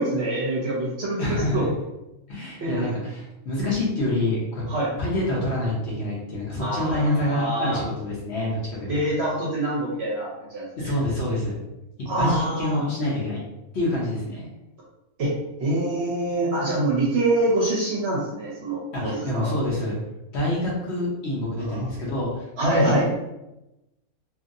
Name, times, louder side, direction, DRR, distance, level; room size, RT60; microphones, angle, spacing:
voice 1, 0.0-1.7 2.6-2.8 4.7-4.9 6.6-7.8 8.9-10.7 12.1-12.8 15.2-15.3 15.6-19.5 21.6-21.9 22.6-23.0, right 1 dB, 55° right, -5 dB, 0.8 m, -25 dB
voice 2, 1.2-1.7 2.3-4.6 5.0-8.9 10.8-11.6 12.2-13.4 13.7-14.5 18.9-20.0 20.3-23.0, left 1 dB, 55° left, -5 dB, 1.0 m, -27 dB
2.8 x 2.7 x 2.6 m, 0.94 s
omnidirectional pair, 1.6 m